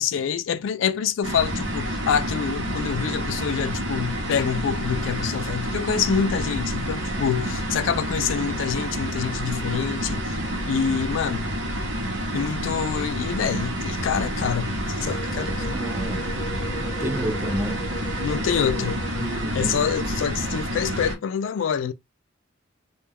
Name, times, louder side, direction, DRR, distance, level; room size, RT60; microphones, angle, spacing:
voice 1, 0.0-10.4 10.7-11.5 12.3-15.7 18.2-19.0 19.5-21.9, left 7 dB, 85° left, 0.3 m, -26 dB
sound 1, 1.2-21.1, equal, 85° right, 0.8 m, -29 dB
voice 2, 7.5-7.9 15.7-16.2 16.8-18.3 19.2-19.8, right 1 dB, 10° right, 0.4 m, -31 dB
sound 2, 15.0-19.4, equal, 15° left, 0.7 m, -38 dB
2.2 x 2.2 x 3.3 m
head